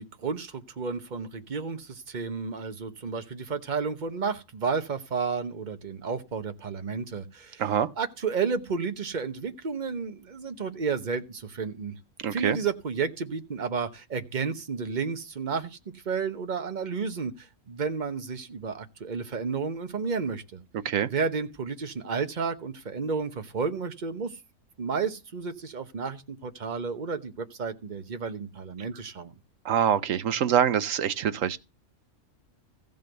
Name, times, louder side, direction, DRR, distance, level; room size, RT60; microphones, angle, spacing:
voice 1, 0.0-7.6 8.0-11.9 12.3-20.6 21.1-24.4 24.8-29.3, right 5 dB, 40° right, 1.1 m, -32 dB
voice 2, 12.2-12.6 20.8-21.1 29.6-31.6, right 9 dB, 75° right, 1.2 m, -25 dB
15.0 x 5.3 x 7.9 m
omnidirectional pair, 1.4 m